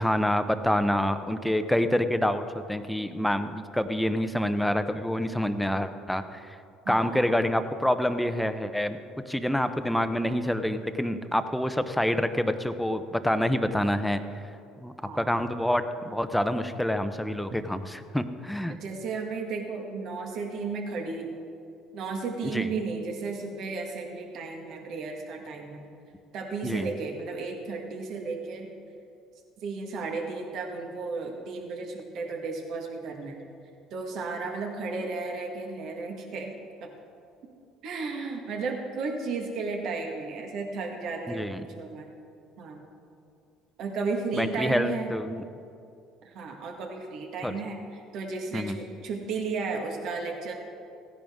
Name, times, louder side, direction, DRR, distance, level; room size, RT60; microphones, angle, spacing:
voice 1, 0.0-6.6 6.9-9.0 9.3-14.2 14.8-18.8 22.4-22.7 26.6-26.9 41.3-41.6 44.3-45.4 47.4-47.5 48.5-48.8, left 1 dB, 5° left, 10 dB, 0.8 m, -27 dB
voice 2, 6.8-7.2 15.0-15.3 18.7-21.4 21.9-25.8 26.3-28.7 29.6-33.4 33.9-36.5 36.8-36.9 37.8-42.1 42.6-42.8 43.8-45.1 46.2-50.5, right 4 dB, 65° right, 2 dB, 1.7 m, -34 dB
16.0 x 10.5 x 3.7 m, 2.5 s
supercardioid pair, 75°, 0 cm